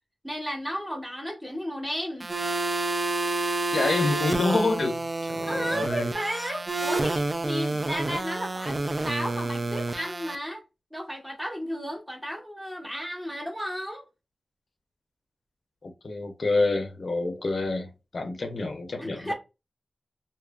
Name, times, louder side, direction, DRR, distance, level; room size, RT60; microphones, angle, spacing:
voice 1, 0.2-2.3 4.5-4.6 5.4-8.8 9.0-10.6 10.9-14.1 19.0-19.3, equal, 5° right, 0.9 m, -33 dB
sound 1, 2.2-10.4, right 2 dB, 40° right, 0.3 m, -29 dB
voice 2, 3.7-4.9 5.3-6.1 15.8-19.3, left 3 dB, 60° left, 0.5 m, -27 dB
2.6 x 2.4 x 2.2 m
wide cardioid pair, 85°, 0 cm